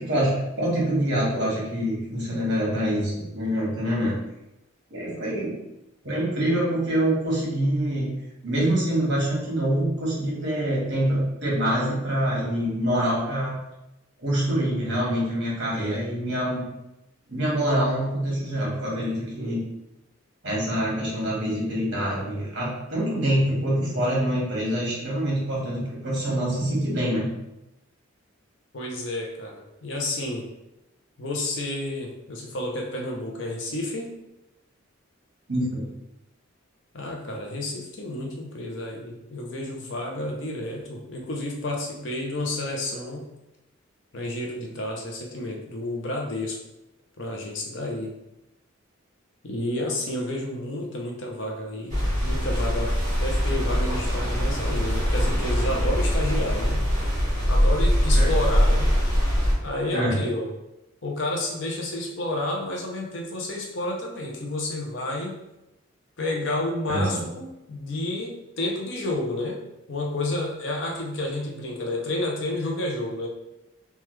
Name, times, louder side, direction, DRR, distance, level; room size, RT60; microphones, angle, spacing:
voice 1, 0.0-4.2 4.9-5.5 6.0-8.1 8.4-13.5 14.2-16.6 17.3-19.6 20.4-27.3 35.5-35.9 58.1-58.4 59.9-60.2 66.9-67.2, right 1 dB, 55° right, -5 dB, 1.3 m, -25 dB
voice 2, 28.7-30.5 31.2-34.1 36.9-43.3 44.1-46.6 47.2-48.1 49.4-56.8 57.5-58.9 59.6-60.5 61.0-65.3 66.2-69.6 69.9-73.3, left 1 dB, 60° left, 0 dB, 0.6 m, -30 dB
sound 1, 51.9-59.5, equal, 35° right, 1.4 m, -22 dB
3.2 x 2.3 x 3.1 m, 0.92 s
head